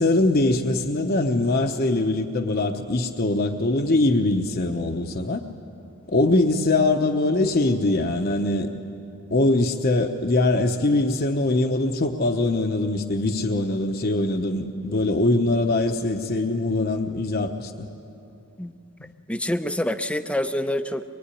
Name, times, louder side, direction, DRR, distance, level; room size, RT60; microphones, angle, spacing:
voice 1, 0.0-5.4 6.1-8.7 9.3-17.9, left 2 dB, 45° left, 4 dB, 1.0 m, -22 dB
voice 2, 19.3-21.0, left 1 dB, 5° left, 9 dB, 0.7 m, -26 dB
24.0 x 22.5 x 9.9 m, 2.7 s
head